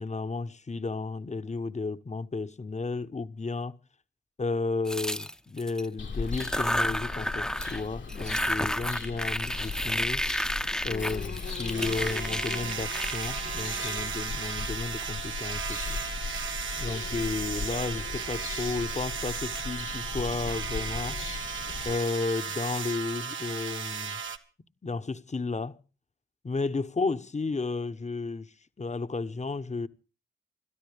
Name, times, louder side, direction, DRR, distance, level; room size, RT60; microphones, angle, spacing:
voice 1, 0.0-3.8 4.4-16.0 16.8-21.2 21.8-24.2 24.8-25.8 26.4-29.9, left 3 dB, 35° left, 1.1 m, -33 dB
sound 1, 4.9-5.9 6.3-14.5, equal, 5° left, 0.9 m, -31 dB
Bird vocalization bird call bird song, 6.0-22.0, left 4 dB, 70° left, 1.8 m, -38 dB
sound 2, 11.7-24.4, right 6 dB, 75° right, 1.4 m, -35 dB
28.5 x 12.5 x 3.5 m
cardioid pair, 50°, 20 cm